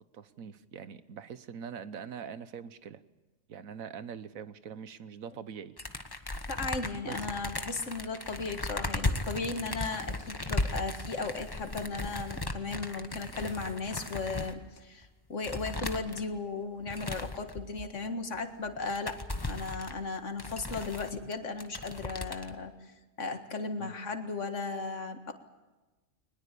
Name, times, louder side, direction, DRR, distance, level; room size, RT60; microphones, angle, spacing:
voice 1, 0.1-3.0 3.5-5.7 7.0-7.2 23.8-23.9, right 7 dB, 90° right, 13 dB, 1.4 m, -43 dB
sound 1, 5.8-14.5 15.0-15.1 15.4-16.2 16.8-17.8 18.3-18.4 18.7-21.3 21.6-22.5, left 2 dB, 20° left, 1.2 m, -36 dB
voice 2, 6.5-19.2 19.4-22.9 23.2-25.3, left 3 dB, 65° left, 7 dB, 2.1 m, -36 dB
22.0 x 20.5 x 8.5 m, 1.1 s
omnidirectional pair, 1.4 m